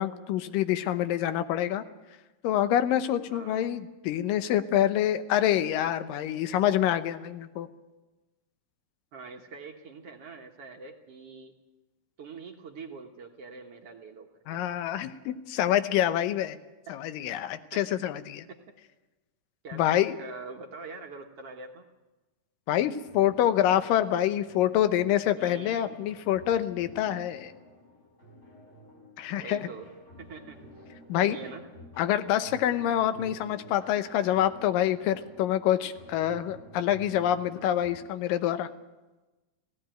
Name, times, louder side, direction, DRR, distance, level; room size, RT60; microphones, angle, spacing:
voice 1, 0.0-1.8 2.4-7.7 14.5-16.6 16.9-18.5 19.7-20.2 22.7-27.5 29.2-29.7 31.1-31.4 32.0-38.7, left 11 dB, 80° left, 11 dB, 2.6 m, -26 dB
voice 2, 3.3-3.7 9.1-11.5 12.2-14.6 16.9-17.0 17.7-17.8 18.5-18.7 19.6-21.9 25.4-26.0 29.3-29.9 30.2-30.6 31.2-31.7, right 4 dB, 55° right, 2 dB, 1.8 m, -44 dB
sound 1, 23.0-38.0, right 1 dB, 20° left, 5.3 m, -51 dB
17.0 x 17.0 x 9.1 m, 1.1 s
omnidirectional pair, 4.0 m